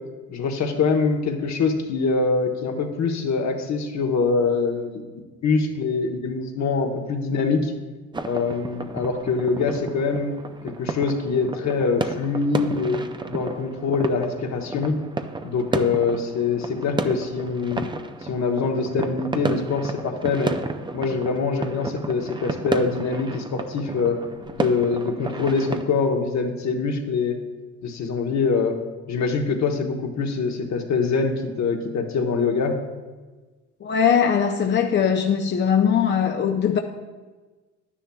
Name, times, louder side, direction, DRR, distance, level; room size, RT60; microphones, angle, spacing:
voice 1, 0.3-5.0 5.4-7.7 8.2-10.3 10.6-15.0 15.4-17.9 18.2-20.5 20.9-24.2 24.5-27.4 27.8-28.8 29.1-32.8, left 4 dB, 65° left, 3 dB, 1.2 m, -24 dB
sound 1, 8.1-25.8, right 3 dB, 15° right, 0.4 m, -32 dB
voice 2, 33.8-36.8, left 7 dB, 40° left, 4 dB, 0.6 m, -20 dB
11.0 x 9.9 x 2.3 m, 1.3 s
cardioid pair, 90°, 30 cm